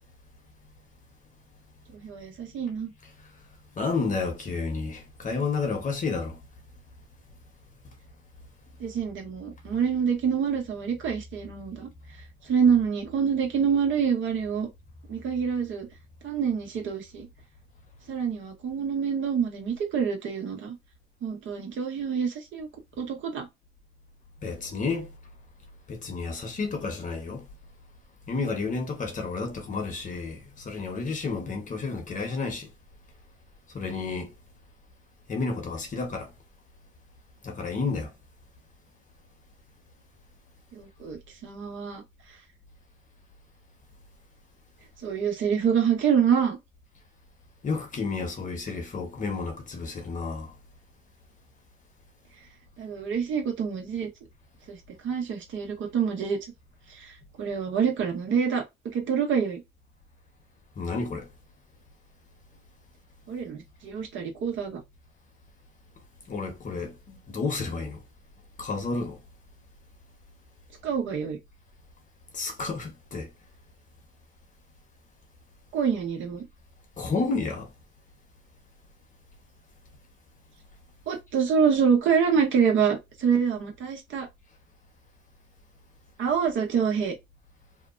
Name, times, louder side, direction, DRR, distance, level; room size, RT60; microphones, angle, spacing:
voice 1, 1.9-2.9 8.8-11.9 12.4-14.7 15.1-15.9 16.2-17.3 18.1-20.7 21.2-22.7 23.0-23.5 40.7-42.0 45.0-46.6 52.8-54.1 54.7-54.8 55.0-56.4 56.9-58.6 58.9-59.6 63.3-64.8 70.8-71.4 75.7-76.4 81.1-84.3 86.2-87.1, right 7 dB, 75° right, 1.1 m, -26 dB
voice 2, 3.8-6.4 24.4-25.1 25.9-27.4 28.3-32.7 33.7-34.3 35.3-36.3 37.4-38.1 47.6-50.5 60.8-61.3 66.3-68.0 68.6-69.2 72.3-73.3 77.0-77.7, left 4 dB, 40° left, 1.0 m, -31 dB
2.8 x 2.2 x 2.5 m
cardioid pair, 90°, 20 cm